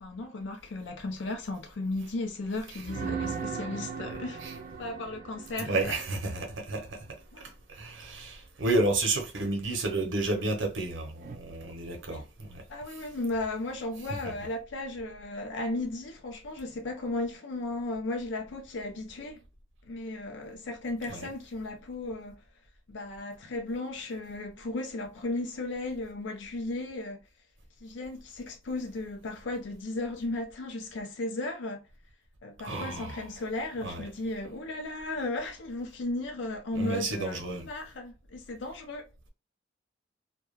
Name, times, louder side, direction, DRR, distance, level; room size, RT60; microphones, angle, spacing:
voice 1, 0.0-4.4 4.8-6.0 7.3-7.5 12.0-12.3 12.7-19.4 19.9-22.4 22.9-27.2 27.8-31.9 32.4-39.1, left 2 dB, 70° left, 0.4 m, -35 dB
sound 1, 2.8-6.7 11.2-11.4, right 5 dB, 45° right, 0.3 m, -38 dB
voice 2, 5.6-12.6 21.1-21.3 32.6-33.2 33.8-34.0 36.8-37.7, right 2 dB, 80° right, 0.7 m, -31 dB
2.3 x 2.2 x 3.1 m
head